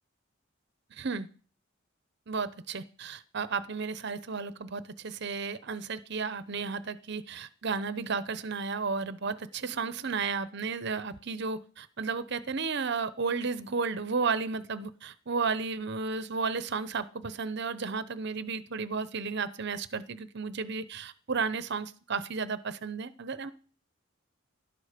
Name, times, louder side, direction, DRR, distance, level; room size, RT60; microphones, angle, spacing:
voice 1, 0.9-1.3 2.3-23.5, right 4 dB, 60° right, 14 dB, 0.8 m, -33 dB
17.5 x 12.0 x 5.1 m, 0.41 s
head